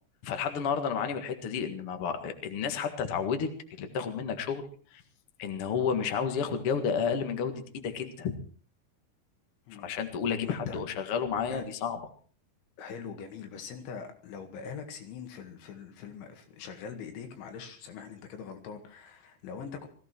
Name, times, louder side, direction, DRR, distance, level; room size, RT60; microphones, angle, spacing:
voice 1, 0.2-3.5 3.8-4.7 4.9-5.0 5.4-8.3 9.7-12.0, left 6 dB, 60° left, 6 dB, 1.5 m, -31 dB
voice 2, 9.7-10.0 10.4-10.8 11.5-11.6 12.8-19.9, left 6 dB, 80° left, 5 dB, 4.4 m, -43 dB
20.0 x 15.0 x 4.5 m, 0.43 s
omnidirectional pair, 5.4 m